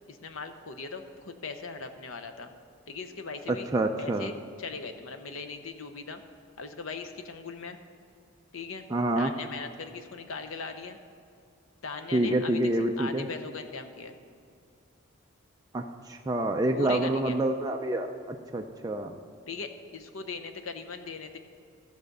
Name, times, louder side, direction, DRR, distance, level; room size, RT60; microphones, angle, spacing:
voice 1, 0.1-2.5 2.9-3.7 4.0-6.2 6.6-7.8 8.5-8.8 9.2-11.0 11.8-14.2 16.7-17.4 19.5-21.4, left 4 dB, 80° left, 8 dB, 0.8 m, -39 dB
voice 2, 3.5-4.3 8.9-9.3 12.1-13.3 15.7-19.2, right 1 dB, 20° right, 3 dB, 0.4 m, -27 dB
14.5 x 5.0 x 6.6 m, 2.4 s
head